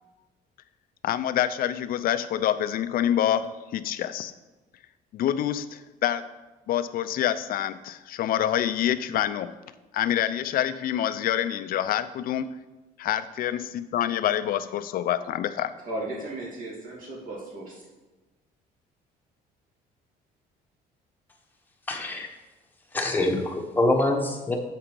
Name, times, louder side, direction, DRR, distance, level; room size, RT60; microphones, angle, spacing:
voice 1, 1.0-4.3 5.1-6.2 6.7-9.5 9.9-12.5 13.0-15.7, left 11 dB, 60° left, 12 dB, 0.5 m, -26 dB
voice 2, 15.8-17.8, right 1 dB, 55° right, -3 dB, 2.7 m, -36 dB
voice 3, 21.9-22.3 22.9-24.6, left 2 dB, 10° left, 0 dB, 1.1 m, -25 dB
7.5 x 5.1 x 4.5 m, 1.1 s
cardioid pair, 110°, 17 cm